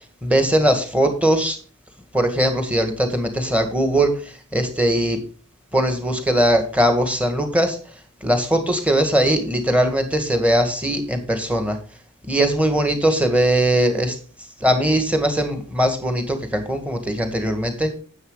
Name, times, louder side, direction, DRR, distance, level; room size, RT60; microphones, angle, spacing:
voice 1, 0.2-1.6 2.1-5.2 5.7-7.8 8.2-11.8 12.3-14.2 14.6-18.0, right 1 dB, 5° right, 6 dB, 1.8 m, -20 dB
9.7 x 8.1 x 3.9 m, 0.39 s
head